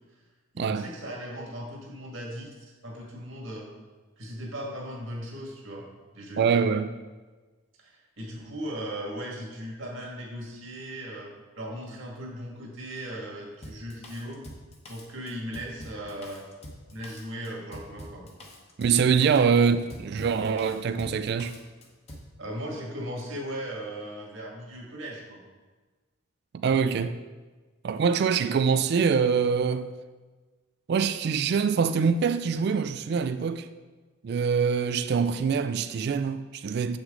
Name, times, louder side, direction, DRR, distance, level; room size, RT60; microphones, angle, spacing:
voice 1, 0.5-3.7 4.2-5.9 6.1-6.7 7.8-14.4 14.9-16.4 16.9-18.3 22.4-25.4, equal, 70° right, 1.9 m, -38 dB
voice 2, 6.4-6.9 18.8-21.6 26.6-27.2 27.8-29.9 30.9-33.7 34.2-37.0, right 6 dB, 50° right, 0.3 m, -24 dB
Drum kit, 13.6-22.3, equal, 30° left, 1.0 m, -45 dB
7.7 x 6.1 x 3.8 m
head